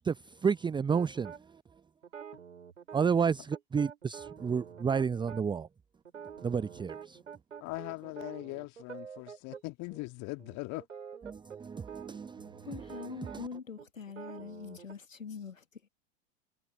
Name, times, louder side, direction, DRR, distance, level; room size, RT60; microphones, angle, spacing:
voice 1, 0.4-1.6 2.9-5.7 6.4-7.2 11.2-13.5, right 6 dB, 10° right, 0.7 m, -31 dB
sound 1, 0.9-1.4 2.0-5.4 6.0-9.6 9.9-10.1 10.4-14.9, right 7 dB, 80° right, 4.7 m, -47 dB
voice 2, 7.6-10.8, left 24 dB, 45° left, 2.1 m, -40 dB
voice 3, 12.6-15.6, left 6 dB, 85° left, 1.5 m, -43 dB
figure-of-eight pair, 80°, 38 cm